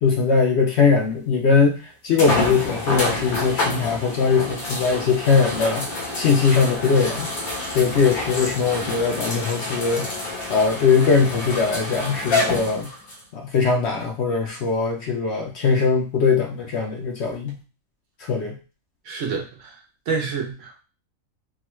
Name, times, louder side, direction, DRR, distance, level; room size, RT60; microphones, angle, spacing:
voice 1, 0.0-5.9 6.1-7.3 7.7-10.1 10.5-12.9 13.3-17.6 18.2-18.6, left 5 dB, 60° left, 1 dB, 0.7 m, -20 dB
sound 1, 1.1-1.2 2.2-13.2 13.9-14.0 17.5-17.6, left 2 dB, 85° left, 1.5 m, -28 dB
voice 2, 19.0-19.8 20.1-20.8, right 5 dB, 65° right, 2 dB, 1.1 m, -28 dB
3.8 x 2.2 x 3.0 m, 0.33 s
omnidirectional pair, 1.5 m